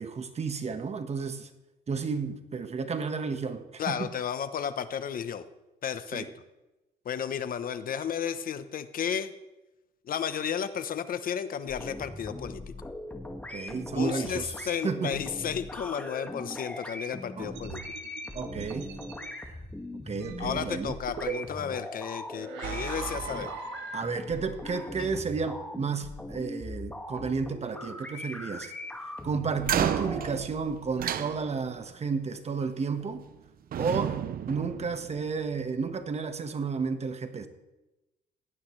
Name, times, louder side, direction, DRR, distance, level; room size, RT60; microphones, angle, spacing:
voice 1, 0.0-1.5 1.9-4.1 6.1-6.3 13.5-15.2 17.4-17.5 18.3-18.9 19.4-19.6 20.1-21.0 23.9-28.7 29.2-33.3 33.8-34.2 34.5-37.5, right 5 dB, 35° right, 8 dB, 1.4 m, -32 dB
voice 2, 3.8-5.4 5.8-6.3 7.0-9.3 10.0-12.7 13.9-17.8 20.4-23.5 25.0-25.1, left 8 dB, 50° left, 12 dB, 0.9 m, -33 dB
sound 1, 11.7-30.4, left 1 dB, 10° left, 1.9 m, -40 dB
sound 2, 17.6-19.3 20.2-21.7 22.3-24.5, right 8 dB, 85° right, 1.7 m, -40 dB
sound 3, 29.6-31.9 33.0-33.4 33.7-35.5, right 10 dB, 55° right, 0.8 m, -32 dB
18.0 x 16.5 x 3.3 m, 1.0 s
cardioid pair, 95°, 18 cm